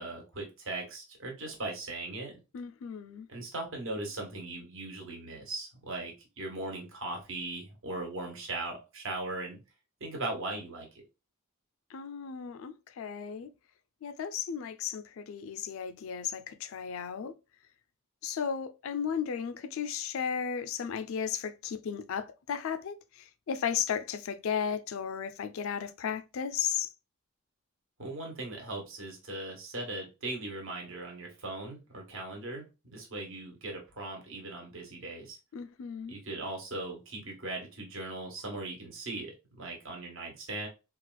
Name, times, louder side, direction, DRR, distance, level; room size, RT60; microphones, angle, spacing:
voice 1, 0.0-2.4 3.3-9.6 10.0-10.9 28.0-35.4 36.1-40.7, right 2 dB, 60° right, 1.1 m, -39 dB
voice 2, 2.5-3.3 11.9-13.5 14.0-17.3 18.2-26.9 35.5-36.2, left 7 dB, 60° left, 0.3 m, -35 dB
4.1 x 2.3 x 2.2 m
head